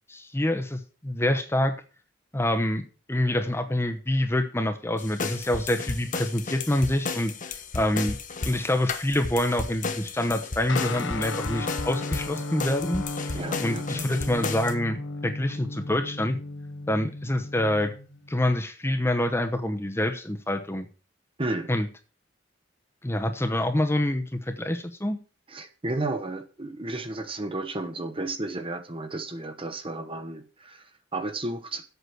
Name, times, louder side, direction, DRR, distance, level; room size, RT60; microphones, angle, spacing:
voice 1, 0.1-1.8 2.3-7.3 7.7-8.2 8.4-16.4 16.9-17.9 18.3-20.9 21.7-21.9 23.0-25.2, left 1 dB, 15° left, 0.9 m, -26 dB
sound 1, 5.0-14.7, left 4 dB, 45° left, 1.1 m, -34 dB
Guitar, 10.7-18.4, left 2 dB, 75° left, 1.1 m, -35 dB
voice 2, 13.3-14.0 21.4-21.7 25.5-31.8, right 2 dB, 30° right, 1.0 m, -33 dB
8.1 x 6.2 x 7.9 m
head